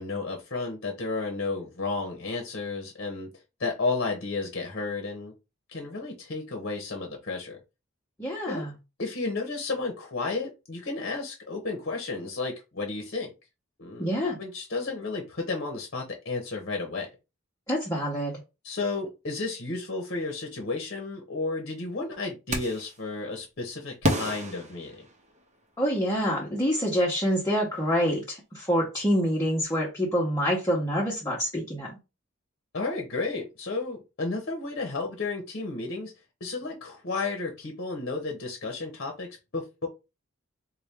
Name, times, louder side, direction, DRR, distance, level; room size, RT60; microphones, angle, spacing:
voice 1, 0.0-3.3 3.6-5.3 5.7-7.6 8.5-8.7 9.0-13.3 13.8-14.1 14.4-17.1 18.6-25.1 32.7-36.1 36.4-39.9, left 3 dB, 55° left, 0.9 m, -32 dB
voice 2, 8.2-8.7 14.0-14.4 17.7-18.3 25.8-32.0, equal, 15° left, 0.9 m, -26 dB
sound 1, 22.5-23.0 24.0-25.6, equal, 35° right, 0.8 m, -30 dB
4.1 x 2.3 x 3.4 m
head